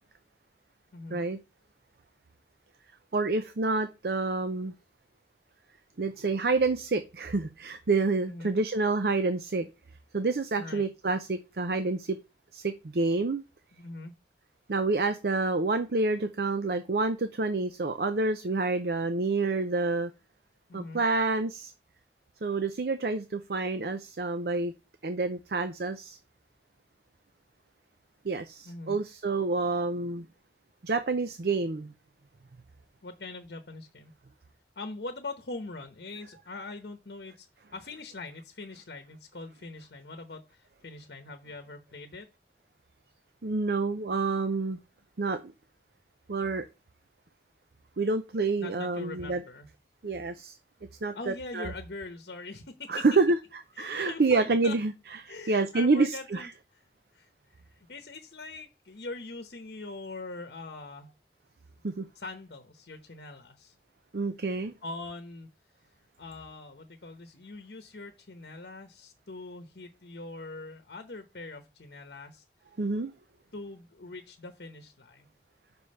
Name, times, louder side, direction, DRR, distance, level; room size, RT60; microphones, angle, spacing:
voice 1, 0.9-1.2 8.3-8.5 10.6-10.9 13.7-14.1 20.7-21.0 28.6-29.0 33.0-34.1 34.8-37.5 37.7-42.3 48.6-49.7 51.1-53.0 53.7-54.7 55.3-56.5 57.1-57.3 57.7-61.1 62.1-63.7 64.8-65.5 66.2-72.4 73.5-75.3, left 3 dB, 65° left, 0.9 m, -42 dB
voice 2, 3.1-4.7 6.0-9.7 10.1-12.2 12.5-13.4 14.7-20.1 20.7-21.7 22.4-24.7 25.0-26.2 28.2-30.3 30.8-31.9 43.4-44.8 45.2-45.5 46.3-46.6 48.0-49.4 50.0-50.6 51.0-51.7 52.9-53.4 53.8-54.9 55.2-56.5 61.8-62.1 64.1-64.7 72.8-73.1, right 3 dB, 60° right, 0.6 m, -28 dB
6.1 x 5.3 x 5.4 m
head